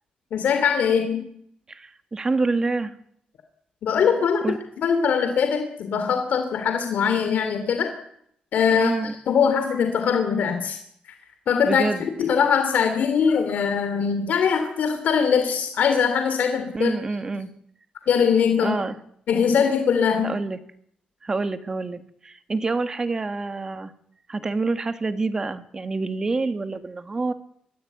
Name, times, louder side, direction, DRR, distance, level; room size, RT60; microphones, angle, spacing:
voice 1, 0.3-1.2 3.8-4.4 4.8-7.9 8.5-8.9 9.3-10.8 11.5-16.9 18.1-18.8 19.3-20.3, left 6 dB, 70° left, 6 dB, 2.8 m, -21 dB
voice 2, 1.7-2.9 4.4-4.6 8.7-9.1 11.6-12.1 16.7-17.5 18.6-19.0 20.2-20.6 21.2-23.9 24.3-27.3, right 3 dB, 25° right, 10 dB, 1.6 m, -27 dB
23.5 x 15.0 x 9.3 m, 0.71 s
wide cardioid pair, 150°, 3 cm